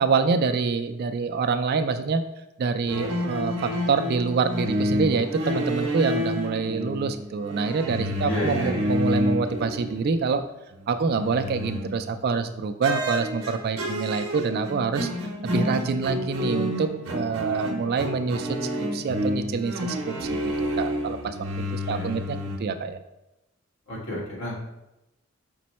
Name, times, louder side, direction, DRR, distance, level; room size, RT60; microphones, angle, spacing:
voice 1, 0.0-2.2 2.6-3.5 3.9-10.4 10.9-15.1 15.4-21.4 21.7-23.0, right 5 dB, 50° right, 8 dB, 0.3 m, -26 dB
sound 1, 2.9-10.4 10.7-12.3 12.8-22.6, equal, 80° right, 0.7 m, -29 dB
voice 2, 8.3-8.9 21.8-22.2 23.9-24.6, equal, 75° left, -4 dB, 1.5 m, -31 dB
5.2 x 2.1 x 4.1 m, 0.94 s
head